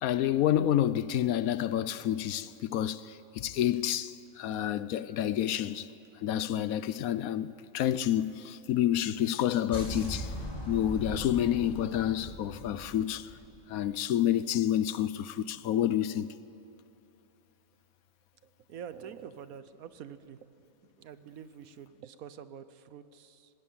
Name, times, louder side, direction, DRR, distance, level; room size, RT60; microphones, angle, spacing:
voice 1, 0.0-5.9 6.2-10.3 10.7-13.3 13.7-16.3, left 11 dB, 75° left, 1.1 m, -29 dB
sound 1, 9.7-13.8, left 1 dB, 25° left, 2.2 m, -40 dB
voice 2, 18.7-20.4 21.0-23.5, right 8 dB, 75° right, 1.2 m, -46 dB
19.5 x 17.0 x 8.7 m
omnidirectional pair, 1.6 m